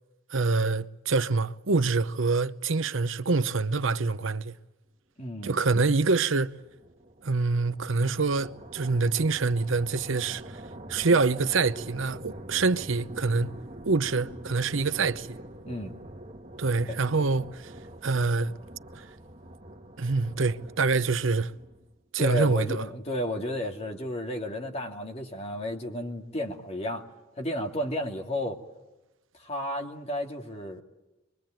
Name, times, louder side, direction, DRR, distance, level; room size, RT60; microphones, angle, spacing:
voice 1, 0.3-4.5 5.4-6.6 7.2-10.6 10.9-13.5 13.8-15.4 16.6-17.7 18.0-18.5 19.0-19.1 20.0-21.5 22.1-22.9, right 3 dB, 65° right, 0.8 m, -26 dB
voice 2, 5.2-5.6 15.7-16.0 16.8-17.0 22.2-27.0 27.4-28.6 29.3-30.8, left 1 dB, 30° left, 2.5 m, -33 dB
sound 1, 6.5-22.0, right 1 dB, 30° right, 1.9 m, -45 dB
25.5 x 23.0 x 9.0 m
head